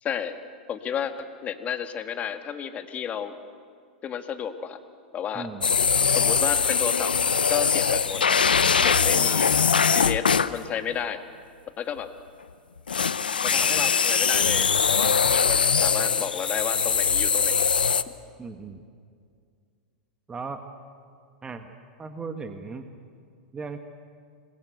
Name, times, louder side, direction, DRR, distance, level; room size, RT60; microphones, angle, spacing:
voice 1, 0.0-0.4 0.7-3.3 4.0-4.8 5.1-5.5 6.1-7.1 7.5-8.2 8.8-9.5 9.9-11.2 11.8-12.1 13.4-17.6, left 8 dB, 30° left, 8 dB, 1.8 m, -32 dB
sound 1, 5.6-10.5 12.9-18.0, left 6 dB, 90° left, 0.8 m, -22 dB
voice 2, 18.4-18.8 20.3-20.6 21.4-21.7 22.0-22.8 23.5-23.8, right 4 dB, 15° right, 7 dB, 1.5 m, -37 dB
27.0 x 21.5 x 8.0 m, 2.2 s
hypercardioid pair, 105°, 5 cm